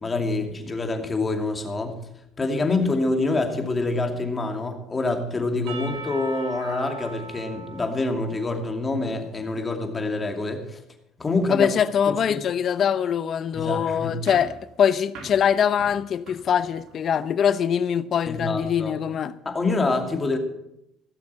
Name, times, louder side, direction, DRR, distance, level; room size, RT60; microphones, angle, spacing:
voice 1, 0.0-2.0 2.4-10.8 11.2-11.7 12.1-12.4 13.5-14.2 18.3-18.9 19.4-20.4, left 3 dB, 25° left, 2.6 m, -26 dB
Percussion / Church bell, 5.7-9.6, right 4 dB, 90° right, 2.9 m, -39 dB
voice 2, 11.5-19.3, left 8 dB, 50° left, 0.7 m, -23 dB
sound 1, 14.3-17.1, right 3 dB, 70° right, 3.7 m, -44 dB
17.5 x 7.0 x 7.6 m
supercardioid pair, 100°, 0 cm